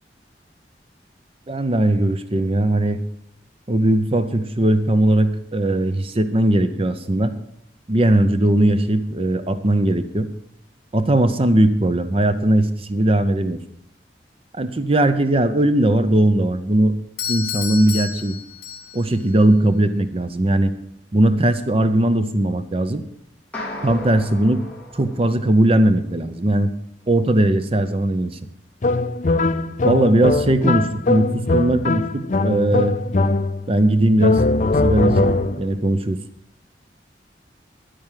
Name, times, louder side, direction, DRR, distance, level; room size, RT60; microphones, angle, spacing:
voice 1, 1.5-3.0 3.7-7.3 7.9-10.3 10.9-13.6 14.5-16.9 17.3-18.4 18.9-20.7 21.1-23.0 23.8-24.6 24.9-26.7 27.1-28.4 29.8-33.0 33.7-34.4 34.8-36.2, right 1 dB, 35° right, 11 dB, 0.7 m, -19 dB
Doorbell, 17.2-19.2, left 8 dB, 60° left, 2.5 m, -30 dB
sound 1, 23.5-26.0, left 1 dB, 10° left, 2.9 m, -35 dB
sound 2, 28.8-33.8 34.2-35.7, left 3 dB, 45° left, 0.6 m, -21 dB
10.0 x 9.7 x 7.4 m, 0.73 s
head